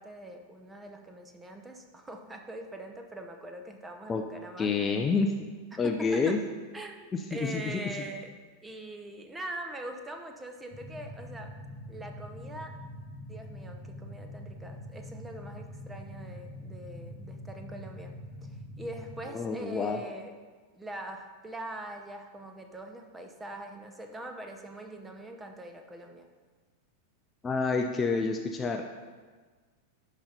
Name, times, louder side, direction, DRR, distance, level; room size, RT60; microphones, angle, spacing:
voice 1, 0.0-4.8 5.7-6.4 6.7-8.4 8.6-11.5 11.9-12.8 13.3-18.1 18.4-18.5 18.8-20.3 20.7-26.3, right 1 dB, 10° right, 4 dB, 0.9 m, -43 dB
voice 2, 4.6-5.3 5.8-6.4 7.3-8.1 19.3-20.0 27.4-28.8, left 4 dB, 20° left, 3 dB, 0.6 m, -28 dB
sound 1, 10.7-19.2, left 1 dB, 25° right, 1.5 m, -44 dB
11.5 x 4.3 x 5.3 m, 1.4 s
figure-of-eight pair, 90°, 0 cm